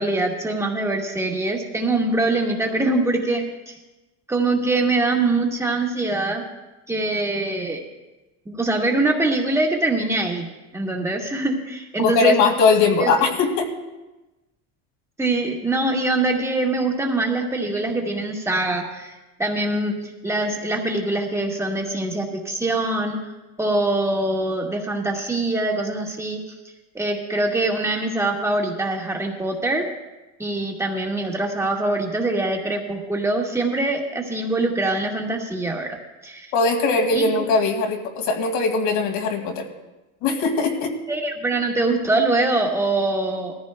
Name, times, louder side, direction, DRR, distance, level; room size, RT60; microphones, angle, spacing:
voice 1, 0.0-3.7 4.3-6.4 6.9-7.8 8.4-10.4 10.7-12.4 13.0-13.1 15.2-20.0 20.2-23.3 23.6-26.4 26.9-29.9 30.4-36.5 37.1-37.3 40.3-40.4 41.1-43.5, right 2 dB, 10° right, 1 dB, 1.6 m, -23 dB
voice 2, 12.0-13.7 36.5-39.7 40.2-40.9, left 4 dB, 75° left, 2 dB, 2.2 m, -20 dB
19.5 x 14.5 x 2.2 m, 1.1 s
cardioid pair, 140°, 34 cm